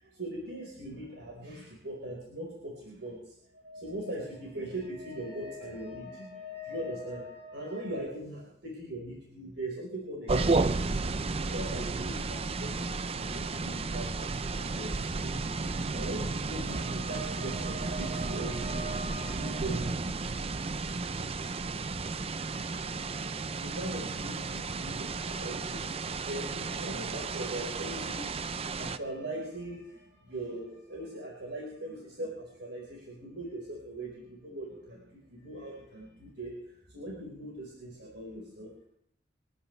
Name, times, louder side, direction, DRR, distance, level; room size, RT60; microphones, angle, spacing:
voice 1, 0.0-3.2 3.6-10.9 11.4-19.8 23.2-25.8 26.2-36.5 36.9-38.8, right 1 dB, 70° right, -2 dB, 4.8 m, -40 dB
sound 1, 10.3-29.0, right 3 dB, 30° right, 0.5 m, -33 dB
29.5 x 11.0 x 3.3 m, 0.66 s
head